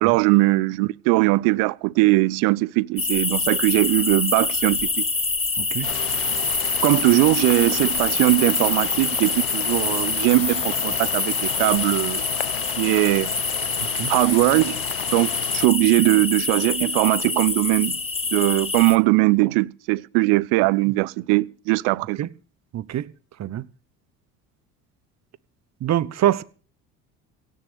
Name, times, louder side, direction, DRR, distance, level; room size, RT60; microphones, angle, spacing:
voice 1, 0.0-5.0 6.8-12.2 12.8-13.3 14.1-14.8 15.1-18.0 18.3-22.3, right 23 dB, 60° right, 0.7 m, -20 dB
sound 1, 3.0-19.0, left 3 dB, 15° left, 1.4 m, -26 dB
voice 2, 5.6-5.9 13.9-14.1 22.2-22.3 22.7-23.1 23.4-23.6 25.8-26.4, right 11 dB, 35° right, 0.9 m, -24 dB
sound 2, 5.8-15.7, left 19 dB, 70° left, 0.8 m, -33 dB
16.5 x 6.4 x 9.1 m
hypercardioid pair, 70°, 45 cm